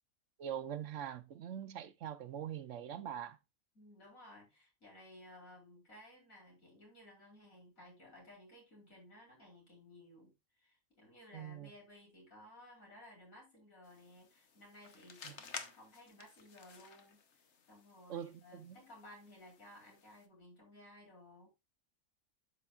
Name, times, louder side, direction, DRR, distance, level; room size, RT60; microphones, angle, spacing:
voice 1, 0.4-3.4 11.3-11.7 15.2-15.3 18.1-18.8, right 9 dB, 70° right, 1.0 m, -43 dB
voice 2, 3.8-17.2 17.7-21.5, left 1 dB, 80° left, 5.0 m, -58 dB
sound 1, 13.8-20.3, left 5 dB, 60° left, 1.3 m, -53 dB
12.0 x 5.1 x 2.4 m
omnidirectional pair, 1.4 m